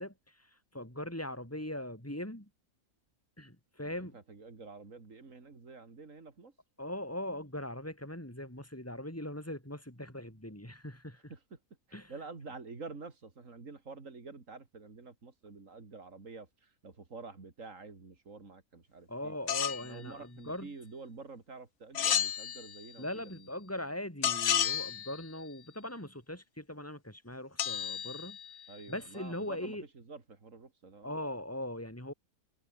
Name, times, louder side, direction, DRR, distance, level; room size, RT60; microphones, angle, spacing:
voice 1, 0.0-2.5 3.4-4.2 6.8-11.3 11.9-12.1 19.1-20.7 23.0-28.4 28.9-29.8 31.0-32.1, left 1 dB, 10° left, 6.4 m, -40 dB
voice 2, 3.8-6.6 11.2-11.6 11.9-19.3 19.8-23.5 28.7-31.2, right 4 dB, 55° right, 3.1 m, -49 dB
sound 1, 19.5-19.9 21.9-22.9 24.2-25.3 27.6-28.7, left 9 dB, 55° left, 1.1 m, -32 dB
omnidirectional pair, 1.6 m